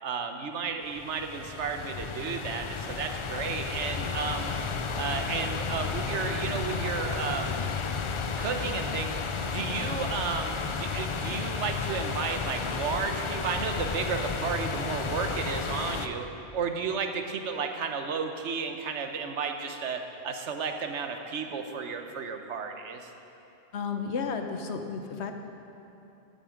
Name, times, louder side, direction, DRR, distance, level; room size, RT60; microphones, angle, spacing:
voice 1, 0.0-4.5 4.9-7.7 8.4-9.2 9.4-16.3 16.5-23.1, right 5 dB, 80° right, 5 dB, 1.1 m, -33 dB
sound 1, 0.9-16.1, left 5 dB, 55° left, 0.3 m, -32 dB
voice 2, 23.7-25.3, left 5 dB, 75° left, 6 dB, 1.1 m, -32 dB
13.0 x 9.0 x 5.1 m, 2.9 s
omnidirectional pair, 1.2 m